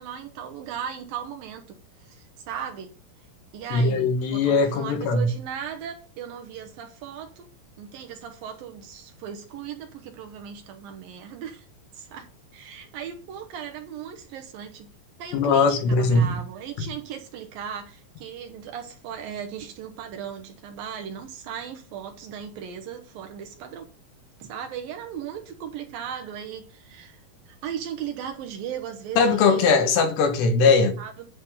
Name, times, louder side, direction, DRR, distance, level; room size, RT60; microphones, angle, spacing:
voice 1, 0.0-1.6 2.0-2.9 3.5-7.5 7.8-11.7 11.9-12.3 12.5-14.9 15.2-23.9 24.4-27.2 27.5-29.8 31.0-31.3, right 8 dB, 70° right, 2.5 m, -37 dB
voice 2, 3.7-5.3 15.3-16.4 29.2-31.0, left 4 dB, 90° left, 3.4 m, -20 dB
10.5 x 3.6 x 6.9 m
omnidirectional pair, 4.7 m